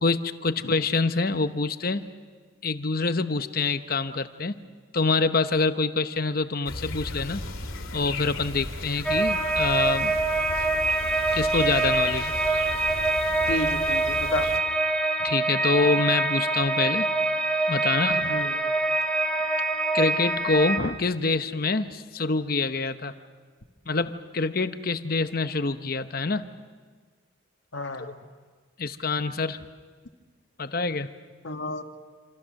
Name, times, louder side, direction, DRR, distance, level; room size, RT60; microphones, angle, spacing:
voice 1, 0.0-2.1 2.6-4.6 4.9-7.4 7.9-10.2 11.3-12.3 15.2-17.1 17.7-18.3 19.9-23.1 23.9-26.5 28.8-29.6 30.6-31.1, left 3 dB, 45° left, 10 dB, 0.9 m, -26 dB
sound 1, 6.6-14.6, left 2 dB, 90° left, 2.6 m, -36 dB
sound 2, 9.0-20.8, right 3 dB, 5° left, 1.4 m, -25 dB
voice 2, 13.5-14.5 18.2-18.6 27.7-28.1 31.4-31.8, left 2 dB, 70° left, 5 dB, 1.8 m, -31 dB
27.5 x 27.0 x 6.5 m, 1.5 s
head